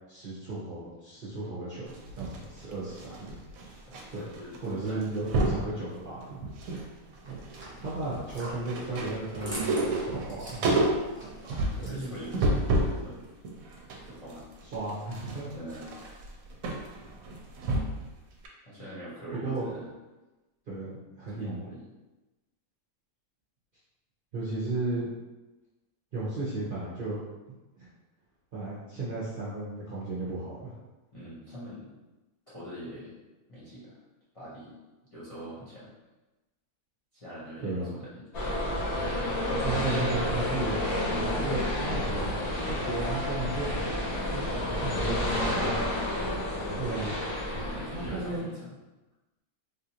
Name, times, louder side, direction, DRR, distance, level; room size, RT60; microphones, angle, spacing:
voice 1, 0.1-3.4 4.1-4.2 4.6-6.4 7.2-7.4 7.8-10.6 11.8-12.0 14.7-15.5 19.3-19.7 20.7-21.6 24.3-25.1 26.1-27.2 27.8-27.9 28.5-30.7 37.6-38.0 39.6-42.4 42.7-43.9 44.3-44.4 44.8-45.7 46.7-47.1 47.9-48.5, right 2 dB, 45° right, -9 dB, 0.7 m, -34 dB
sound 1, 1.9-4.0 4.3-4.6 4.8-5.7 6.2-6.9 7.2-13.0 13.4-18.1 18.4-18.5, right 1 dB, 75° right, 1.0 m, -30 dB
voice 2, 3.8-5.2 11.4-13.3 13.7-14.5 15.5-16.2 18.7-19.9 21.3-21.8 31.1-31.9 32.5-33.1 33.5-34.0 34.3-34.8 35.1-35.9 37.1-38.3 44.4-44.7 45.0-45.5 47.6-48.7, equal, 30° left, -10 dB, 0.8 m, -43 dB
sound 2, 7.2-12.4, right 2 dB, 15° right, 0.4 m, -42 dB
sound 3, 38.3-48.4, left 1 dB, 90° left, 1.4 m, -30 dB
3.5 x 2.4 x 2.8 m, 1.1 s
omnidirectional pair, 1.5 m